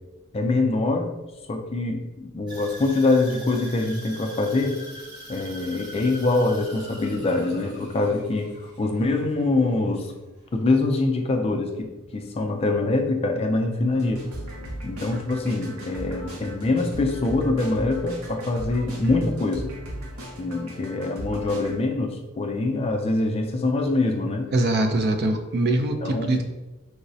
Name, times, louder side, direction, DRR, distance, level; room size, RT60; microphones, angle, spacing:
voice 1, 0.3-1.1 1.5-4.8 5.3-10.1 10.5-14.3 14.8-19.7 20.4-24.5 26.0-26.4, left 2 dB, 30° left, 3 dB, 0.3 m, -24 dB
sound 1, 2.5-10.7 11.0-11.4 11.9-12.0, equal, 20° right, 0.8 m, -43 dB
sound 2, 13.9-21.7, right 1 dB, 85° right, 0.7 m, -37 dB
voice 2, 24.5-26.4, right 2 dB, 50° right, 6 dB, 0.4 m, -23 dB
4.6 x 2.0 x 2.6 m, 1.1 s
head